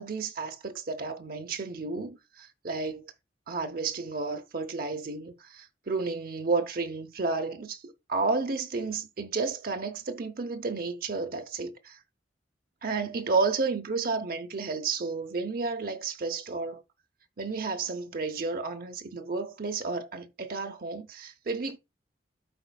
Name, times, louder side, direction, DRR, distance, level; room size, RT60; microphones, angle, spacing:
voice 1, 0.0-3.1 3.5-12.0 12.8-16.8 17.4-21.8, right 4 dB, 50° right, 0.7 m, -32 dB
12.5 x 4.3 x 2.3 m
head